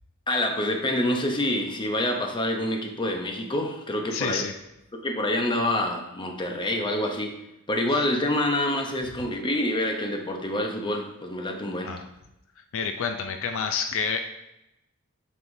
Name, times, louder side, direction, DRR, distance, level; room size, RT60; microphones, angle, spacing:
voice 1, 0.3-4.4 5.0-7.4 7.7-11.9, left 1 dB, 20° left, 3 dB, 0.8 m, -27 dB
voice 2, 4.1-4.5 11.8-12.0 12.7-14.3, left 6 dB, 65° left, 6 dB, 0.5 m, -28 dB
7.7 x 5.5 x 2.7 m, 0.88 s
head